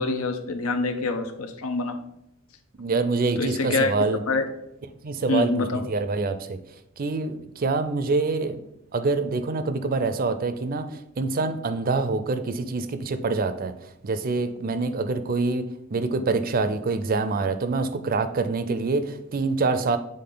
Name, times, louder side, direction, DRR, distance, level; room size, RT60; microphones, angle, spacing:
voice 1, 0.0-2.0 3.4-4.5 5.3-5.8, left 3 dB, 85° left, 8 dB, 0.7 m, -26 dB
voice 2, 2.8-4.2 5.0-6.6 7.0-8.6 8.9-13.7 14.0-20.0, right 3 dB, 40° right, 10 dB, 0.4 m, -26 dB
7.6 x 3.7 x 3.8 m, 0.84 s
head